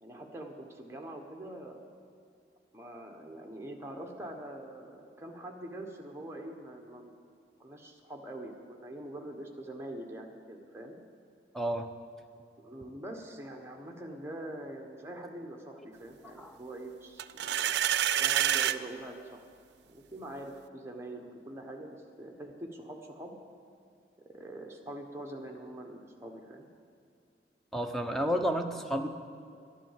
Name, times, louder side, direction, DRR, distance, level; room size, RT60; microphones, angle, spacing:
voice 1, 0.0-1.8 2.7-7.1 7.6-11.0 12.6-17.8 18.0-19.4 19.9-23.3 24.3-26.7, right 1 dB, 15° right, 2 dB, 1.1 m, -44 dB
voice 2, 11.5-11.9 16.3-16.6 27.7-29.1, equal, ahead, 5 dB, 0.7 m, -31 dB
sound 1, 17.2-18.8, right 10 dB, 75° right, 0.4 m, -27 dB
11.5 x 11.0 x 7.4 m, 2.4 s
head